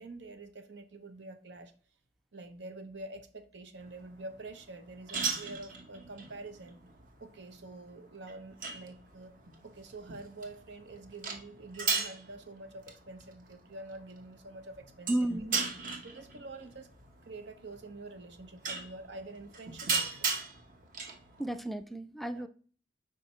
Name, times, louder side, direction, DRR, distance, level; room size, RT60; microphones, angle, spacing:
voice 1, 0.0-1.7 2.3-6.8 7.2-9.4 9.6-15.1 16.0-16.9 17.2-20.3 22.4-22.5, right 2 dB, 90° right, 8 dB, 0.9 m, -46 dB
sound 1, 3.8-21.6, right 4 dB, 50° right, 1.0 m, -39 dB
voice 2, 15.1-15.6 21.4-22.5, right 1 dB, ahead, 8 dB, 0.3 m, -33 dB
7.5 x 4.9 x 3.2 m, 0.41 s
head